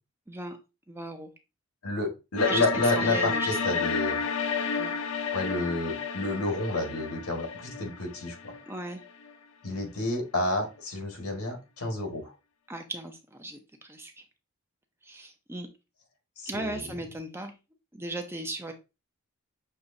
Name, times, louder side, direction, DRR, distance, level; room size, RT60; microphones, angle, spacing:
voice 1, 0.3-0.6 0.9-1.3 2.5-2.7 2.9-3.8 4.8-5.0 8.7-9.0 12.7-14.2 15.0-15.7 16.5-17.5 17.9-18.7, right 1 dB, 10° right, 5 dB, 0.5 m, -37 dB
voice 2, 1.8-4.2 5.3-8.5 9.6-12.3 16.4-16.8, left 2 dB, 90° left, 2 dB, 1.7 m, -30 dB
sound 1, 2.4-9.3, left 5 dB, 60° left, 0.4 m, -31 dB
6.5 x 3.0 x 2.6 m, 0.27 s
head